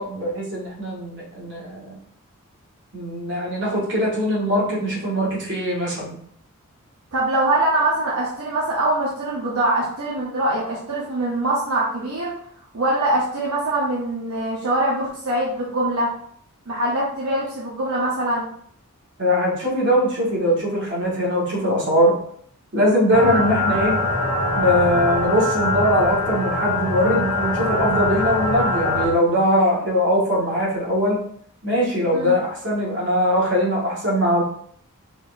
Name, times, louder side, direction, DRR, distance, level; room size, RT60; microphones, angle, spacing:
voice 1, 0.0-1.9 2.9-6.2 19.2-22.1 22.7-24.0 24.5-31.2 31.6-34.4, equal, 55° right, -5 dB, 2.0 m, -21 dB
voice 2, 7.1-12.4 12.7-16.1 16.7-18.5 23.2-23.4 32.1-32.4, right 1 dB, 85° right, -5 dB, 1.0 m, -23 dB
sound 1, 23.1-29.0, left 2 dB, 80° left, 1.1 m, -23 dB
4.8 x 4.1 x 2.7 m, 0.63 s
head